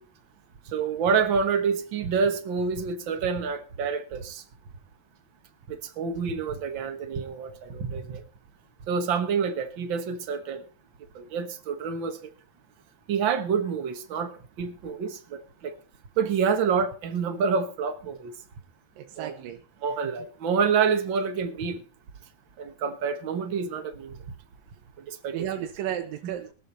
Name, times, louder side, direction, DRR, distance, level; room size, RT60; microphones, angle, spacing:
voice 1, 0.7-4.4 5.7-8.2 8.9-10.6 11.1-12.3 13.1-14.3 14.6-15.7 16.2-18.3 19.2-19.3 19.8-21.8 22.6-24.2 25.1-25.7 26.2-26.3, right 6 dB, 55° right, 1.3 m, -27 dB
voice 2, 19.0-19.6 25.3-26.5, right 11 dB, 90° right, 2.7 m, -33 dB
21.5 x 7.6 x 4.1 m
omnidirectional pair, 3.9 m